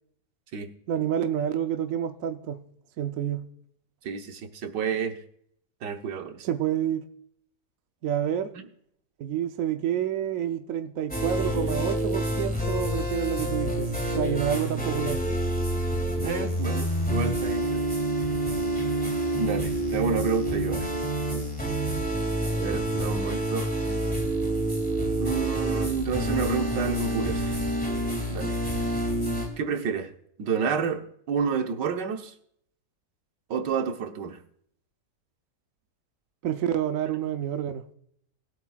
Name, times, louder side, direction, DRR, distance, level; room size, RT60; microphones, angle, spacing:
voice 1, 0.9-2.6 3.0-3.5 6.4-7.0 8.0-8.5 9.2-13.9 14.1-15.2 36.4-37.8, right 10 dB, 60° right, 1.0 m, -28 dB
voice 2, 4.0-5.2 5.8-6.5 8.5-8.6 16.2-17.8 19.4-20.9 22.5-23.7 25.2-27.6 28.3-28.6 29.6-30.1 30.4-32.3 33.5-34.4, right 6 dB, 90° right, 1.7 m, -30 dB
sound 1, 11.1-29.5, right 1 dB, 5° left, 2.2 m, -28 dB
20.5 x 8.3 x 2.4 m
omnidirectional pair, 1.8 m